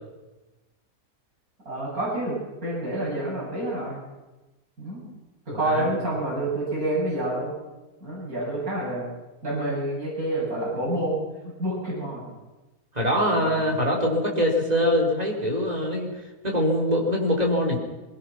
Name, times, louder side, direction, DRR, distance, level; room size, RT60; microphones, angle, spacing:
voice 1, 1.6-2.4 2.6-4.0 4.8-5.0 5.4-7.5 8.0-9.1 9.4-12.3 13.2-13.8, right 1 dB, 70° right, -7 dB, 8.5 m, -28 dB
voice 2, 5.5-5.9 12.9-16.1 16.4-17.8, equal, 25° right, 0 dB, 4.1 m, -23 dB
22.0 x 20.5 x 6.0 m, 1.1 s
omnidirectional pair, 1.6 m